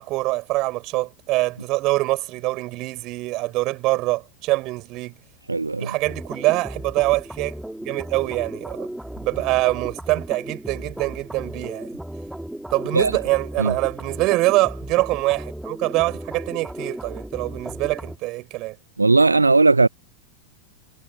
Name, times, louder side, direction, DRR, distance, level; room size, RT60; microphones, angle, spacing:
voice 1, 0.0-5.2 5.8-8.9 9.2-11.9 12.7-18.8, right 20 dB, 40° right, 5.5 m, -24 dB
voice 2, 5.5-5.9 12.9-13.1 13.6-13.7 19.0-19.9, right 3 dB, 80° right, 0.6 m, -17 dB
sound 1, 6.0-18.2, right 1 dB, ahead, 2.5 m, -35 dB
figure-of-eight pair, 90°, 0 cm